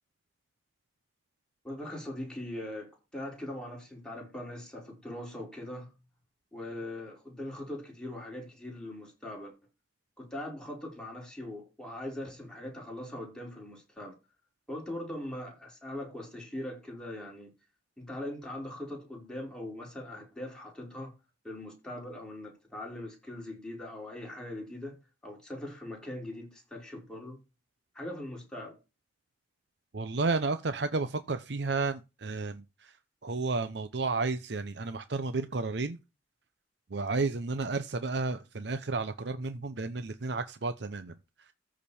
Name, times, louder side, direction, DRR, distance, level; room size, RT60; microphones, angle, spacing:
voice 1, 1.6-5.9 6.5-9.5 10.2-14.1 14.7-17.5 18.0-21.1 21.4-25.0 25.2-27.4 27.9-28.8, left 1 dB, 5° left, 4.9 m, -41 dB
voice 2, 29.9-32.9 33.2-36.0 36.9-41.1, right 3 dB, 65° right, 0.7 m, -32 dB
14.0 x 5.2 x 4.3 m
head